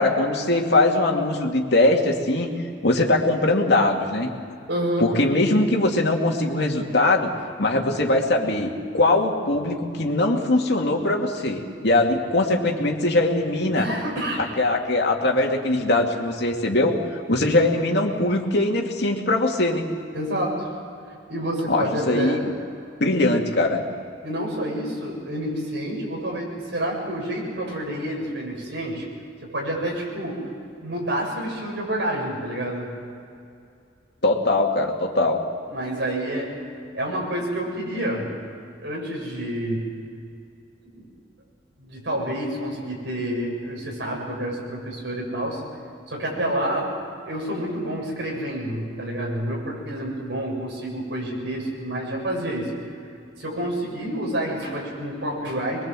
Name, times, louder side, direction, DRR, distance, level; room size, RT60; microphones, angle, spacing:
voice 1, 0.0-2.5 2.8-4.3 5.0-7.3 7.6-13.9 14.4-17.0 17.3-19.8 21.7-22.5 23.0-23.8 34.2-35.4, left 2 dB, 65° left, 1 dB, 2.6 m, -21 dB
voice 2, 4.7-5.1 13.8-14.5 20.1-20.7 21.3-22.4 24.2-29.1 29.5-30.4 30.8-32.9 35.7-36.5 36.9-38.3 38.8-39.8 40.9-41.1 41.8-45.6 46.1-46.9 47.2-52.7 53.4-55.8, right 1 dB, 70° right, -2 dB, 7.4 m, -28 dB
23.0 x 22.5 x 7.7 m, 2.4 s
head